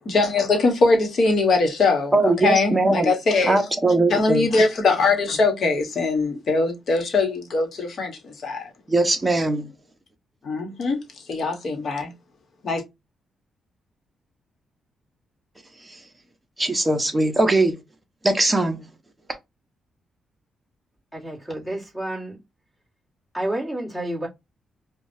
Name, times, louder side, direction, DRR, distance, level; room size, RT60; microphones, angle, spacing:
voice 1, 0.1-3.6 4.1-8.7 10.4-11.0 11.3-12.1 12.6-12.8, left 3 dB, 50° left, 1.2 m, -21 dB
voice 2, 2.1-3.1 3.5-4.5 8.9-9.7 15.9-16.0 16.6-17.8 18.2-18.9, right 2 dB, 15° right, 0.8 m, -20 dB
voice 3, 21.1-22.4 23.3-24.3, right 1 dB, 5° left, 1.6 m, -29 dB
5.1 x 2.3 x 2.7 m
cardioid pair, 140°, 0 cm